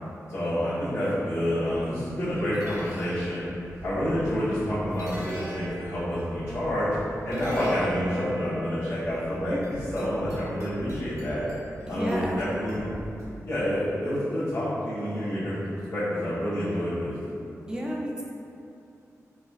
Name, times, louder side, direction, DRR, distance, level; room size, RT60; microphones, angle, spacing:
voice 1, 0.3-3.4 3.8-6.9 7.2-11.5 11.9-13.0 13.5-17.1, equal, 60° left, -17 dB, 1.2 m, -28 dB
sound 1, 1.7-13.8, right 1 dB, 75° right, 0.9 m, -42 dB
voice 2, 11.9-12.8 17.7-18.2, equal, 15° right, -4 dB, 0.5 m, -32 dB
4.0 x 2.2 x 2.5 m, 2.7 s
wide cardioid pair, 95°, 6 cm